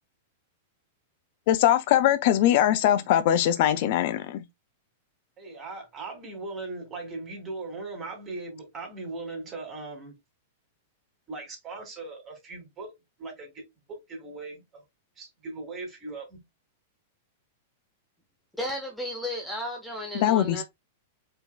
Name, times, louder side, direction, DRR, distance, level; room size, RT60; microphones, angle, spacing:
voice 1, 1.5-4.4 20.1-20.6, left 11 dB, 50° left, 0.5 m, -22 dB
voice 2, 5.4-10.1 11.3-12.9 13.2-14.8 15.2-16.4, right 3 dB, 25° right, 2.8 m, -39 dB
voice 3, 18.6-20.6, left 1 dB, 5° left, 1.0 m, -33 dB
5.1 x 4.5 x 2.3 m
figure-of-eight pair, 95°, 0 cm